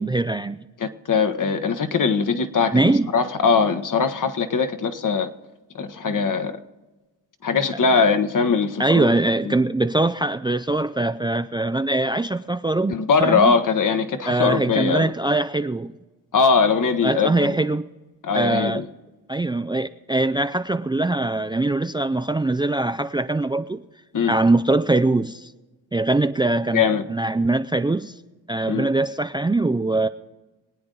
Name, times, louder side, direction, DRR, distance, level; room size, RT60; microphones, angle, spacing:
voice 1, 0.0-0.6 2.7-3.1 7.9-8.0 8.8-12.9 13.2-13.6 14.3-15.9 17.0-17.9 18.3-18.8 19.3-23.8 24.3-25.5 25.9-28.1 28.5-30.1, right 2 dB, 10° right, 0.4 m, -22 dB
voice 2, 0.8-5.3 5.7-6.6 7.4-9.1 9.4-9.5 12.9-15.1 16.3-17.5 18.2-18.9 24.1-24.3 26.7-27.0 28.7-28.9, left 5 dB, 50° left, 1.3 m, -21 dB
24.5 x 8.9 x 3.9 m
supercardioid pair, 60°, 40 cm